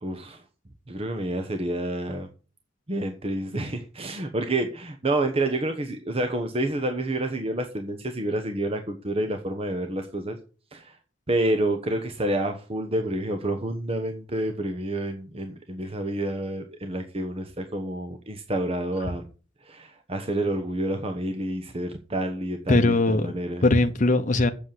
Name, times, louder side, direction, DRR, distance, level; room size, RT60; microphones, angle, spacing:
voice 1, 0.0-0.4 0.9-2.3 2.9-10.4 10.7-11.0 11.3-19.3 19.6-23.6, right 1 dB, 30° right, 1.1 m, -29 dB
voice 2, 22.7-24.5, left 2 dB, 40° left, 0.9 m, -21 dB
8.2 x 6.8 x 7.6 m
head